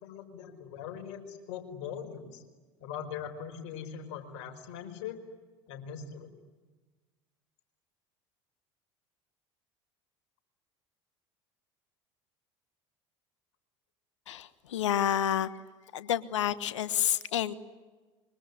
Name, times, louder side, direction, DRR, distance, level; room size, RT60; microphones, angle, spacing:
voice 1, 0.0-2.4 2.8-5.2 5.7-6.3, left 8 dB, 70° left, 5 dB, 5.1 m, -41 dB
voice 2, 14.3-15.5 15.9-17.5, left 10 dB, 85° left, 14 dB, 1.4 m, -29 dB
26.0 x 24.0 x 9.8 m, 1.3 s
hypercardioid pair, 75°, 15 cm